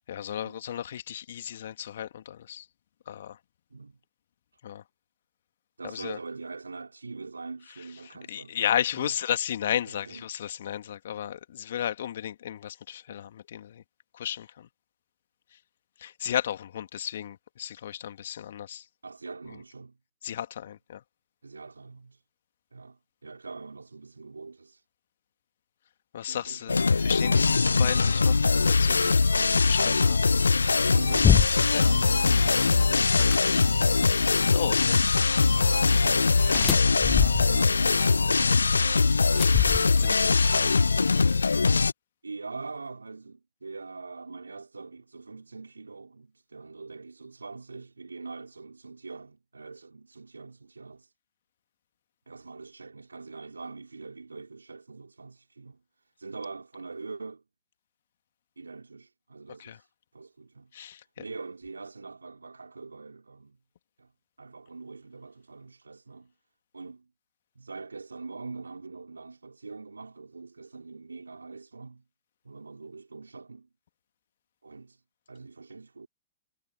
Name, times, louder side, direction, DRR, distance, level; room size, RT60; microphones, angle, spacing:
voice 1, 0.1-2.7 3.1-3.4 4.6-4.8 5.8-6.2 8.0-13.8 14.1-14.7 16.0-18.8 20.2-21.0 26.1-29.3 29.7-30.2 31.7-31.9 34.5-35.1 40.0-40.5 59.6-59.8 60.7-61.2, left 10 dB, 65° left, 2.4 m, -34 dB
voice 2, 5.8-8.6 9.0-9.2 9.8-10.2 19.0-20.0 21.4-22.2 22.7-24.8 26.3-26.8 30.9-34.6 35.5-39.7 40.2-40.9 42.2-51.1 52.3-55.8 56.2-57.4 58.6-60.7 61.2-63.6 64.0-64.1 64.4-66.3 66.7-67.1 67.6-72.0 72.4-73.7 74.6-75.0 75.3-76.1, right 4 dB, 85° right, 4.2 m, -43 dB
sound 1, 26.7-41.9, left 4 dB, 80° left, 0.5 m, -22 dB
sound 2, 31.1-31.8 33.1-33.4 36.4-37.7 39.3-40.2, left 9 dB, 25° left, 0.9 m, -26 dB
figure-of-eight pair, 105°, 0 cm